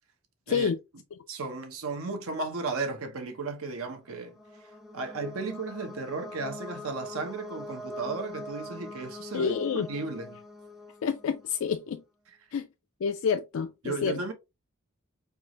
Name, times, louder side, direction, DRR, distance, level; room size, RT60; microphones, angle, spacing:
voice 1, 0.5-0.8 9.3-9.9 11.0-12.0 12.5-12.7 13.0-14.2, left 6 dB, 70° left, 0.3 m, -28 dB
voice 2, 1.3-10.4 13.8-14.3, right 3 dB, 80° right, 0.9 m, -35 dB
sound 1, 4.0-11.7, left 1 dB, ahead, 0.5 m, -43 dB
4.6 x 2.4 x 3.0 m
head